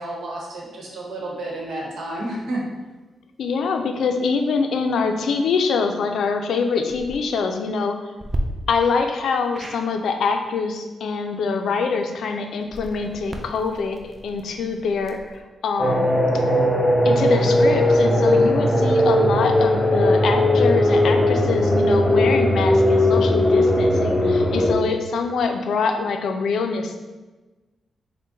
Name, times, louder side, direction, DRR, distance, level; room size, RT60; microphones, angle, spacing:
voice 1, 0.0-2.6, right 1 dB, 85° right, -3 dB, 1.0 m, -31 dB
voice 2, 3.4-8.0 8.7-16.1 17.0-27.0, left 4 dB, 80° left, 5 dB, 0.4 m, -24 dB
sound 1, 6.8-7.2 8.2-8.4 9.5-9.8 12.6-15.4, right 1 dB, 20° right, 0.4 m, -34 dB
sound 2, 15.8-24.7, left 1 dB, 15° left, 0.7 m, -18 dB
3.7 x 2.1 x 3.9 m, 1.2 s
wide cardioid pair, 120°, 0 cm